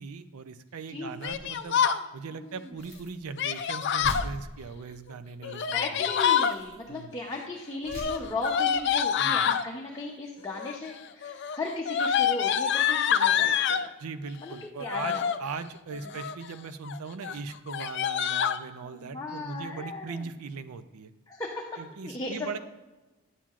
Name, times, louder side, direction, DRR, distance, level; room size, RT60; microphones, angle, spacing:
voice 1, 0.0-1.8 2.1-6.0 6.9-7.1 9.2-9.5 14.0-21.1 21.8-22.6, right 4 dB, 85° right, 12 dB, 0.5 m, -39 dB
Yell, 1.2-2.0 3.4-4.3 5.4-6.5 7.8-9.6 10.5-10.9 11.2-13.9 14.8-15.4 15.9-16.5 16.8-17.0 17.2-17.4 17.7-18.6, left 8 dB, 50° left, 0.3 m, -26 dB
sound 1, 1.3-1.6 2.7-3.2 3.6-3.7 4.0-4.9 5.9-6.0 6.3-6.9 7.8-8.3 8.7-8.9, equal, 50° right, 2.4 m, -41 dB
voice 2, 5.4-13.8 14.4-15.3 18.8-20.3 21.3-21.7 22.0-22.5, left 2 dB, 15° left, -3 dB, 0.7 m, -37 dB
9.8 x 7.3 x 2.4 m, 1.1 s
head